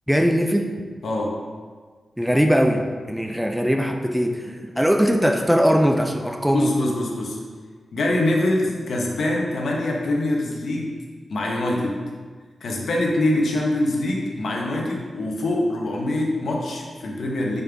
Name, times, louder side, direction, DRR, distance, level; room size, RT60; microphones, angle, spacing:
voice 1, 0.1-0.7 2.2-6.7, equal, ahead, 3 dB, 0.3 m, -20 dB
voice 2, 1.0-1.4 6.5-7.4 7.9-10.9 11.3-12.0 12.6-17.6, left 1 dB, 70° left, -1 dB, 1.0 m, -24 dB
5.4 x 5.3 x 3.5 m, 1.5 s
wide cardioid pair, 150°, 0 cm